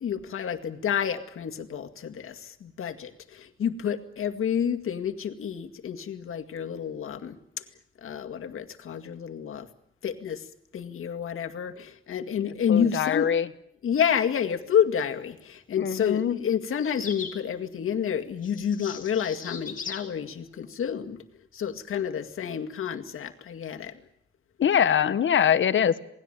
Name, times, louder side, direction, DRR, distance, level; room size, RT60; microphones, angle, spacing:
voice 1, 0.0-7.4 8.0-9.7 10.0-10.4 10.7-13.3 13.8-21.2 21.5-24.0, left 8 dB, 85° left, 5 dB, 2.1 m, -29 dB
voice 2, 12.7-13.5 15.8-16.4 24.6-26.0, left 8 dB, 65° left, 13 dB, 1.2 m, -23 dB
sound 1, 16.7-17.4 18.4-20.1, left 5 dB, 40° left, 2.8 m, -39 dB
27.5 x 19.5 x 9.0 m, 0.78 s
wide cardioid pair, 140°, 21 cm